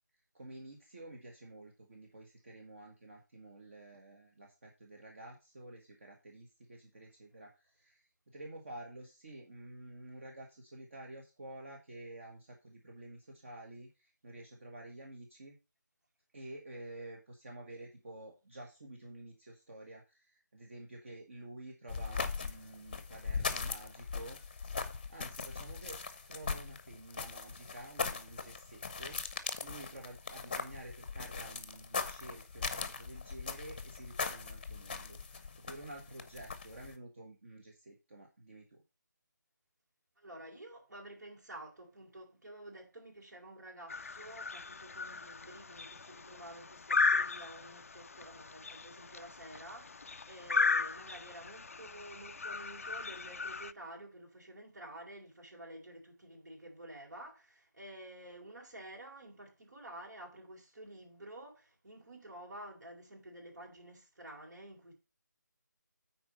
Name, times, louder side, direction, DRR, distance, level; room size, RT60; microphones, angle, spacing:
voice 1, 0.3-15.6 16.3-24.8 25.1-26.0 26.3-38.8, right 1 dB, 40° right, 1.8 m, -50 dB
sound 1, 21.9-36.9, left 5 dB, 30° left, 0.8 m, -40 dB
voice 2, 40.2-64.9, right 1 dB, 65° right, 4.4 m, -50 dB
sound 2, 43.9-53.7, left 4 dB, 45° left, 0.4 m, -36 dB
9.2 x 4.6 x 5.3 m
figure-of-eight pair, 175°, 10 cm